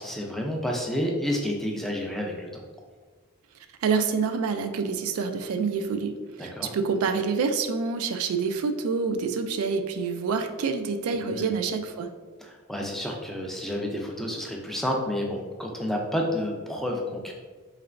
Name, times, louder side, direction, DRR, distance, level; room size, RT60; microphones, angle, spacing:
voice 1, 0.0-2.6 6.4-6.7 11.1-11.5 12.4-17.3, left 1 dB, ahead, 0 dB, 0.4 m, -30 dB
voice 2, 3.8-12.1, right 5 dB, 85° right, 8 dB, 0.3 m, -27 dB
3.8 x 3.2 x 2.4 m, 1.4 s
head